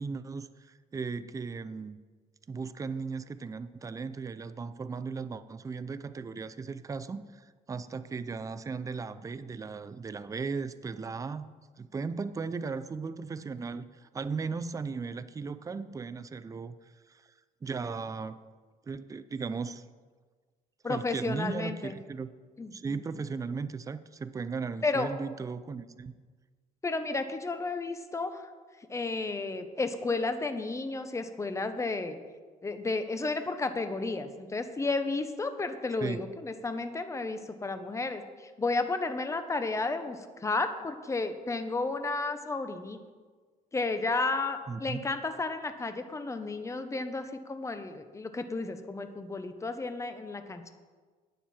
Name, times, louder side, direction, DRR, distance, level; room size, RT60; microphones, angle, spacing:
voice 1, 0.0-2.0 2.5-11.5 11.8-17.3 17.6-18.4 18.8-19.8 20.8-22.3 22.7-26.1 36.0-36.2 44.7-45.0, right 4 dB, 20° right, 12 dB, 0.5 m, -37 dB
voice 2, 20.8-22.0 22.6-22.9 24.8-25.1 26.8-28.5 28.9-32.2 32.6-43.0 43.7-50.7, left 3 dB, 20° left, 9 dB, 0.9 m, -32 dB
12.0 x 9.2 x 4.3 m, 1.4 s
cardioid pair, 120°, 17 cm